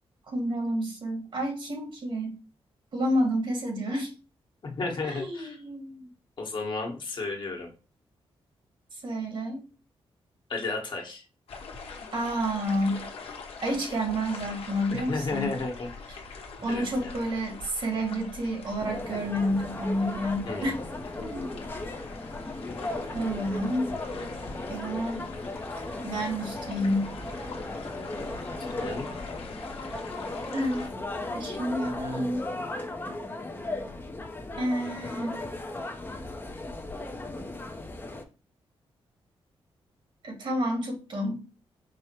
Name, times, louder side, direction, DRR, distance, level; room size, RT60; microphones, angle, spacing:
voice 1, 0.3-2.4 2.9-4.1 5.0-6.1 9.0-9.6 12.1-13.1 13.6-15.5 16.6-20.8 21.2-21.5 23.1-23.9 24.7-25.3 26.0-27.2 30.5-30.9 31.3-32.4 34.6-35.4 40.2-41.4, equal, 55° right, 2 dB, 1.6 m, -29 dB
voice 2, 4.6-5.5 6.4-7.7 10.5-11.2 14.9-15.9 16.7-17.1 20.5-21.1 28.7-29.1, left 3 dB, 50° left, 1 dB, 1.3 m, -33 dB
sound 1, 11.5-30.9, left 4 dB, 75° left, 1.0 m, -43 dB
sound 2, 18.8-38.2, left 2 dB, 20° left, 0.6 m, -37 dB
4.9 x 2.1 x 4.4 m, 0.33 s
cardioid pair, 100°, 10 cm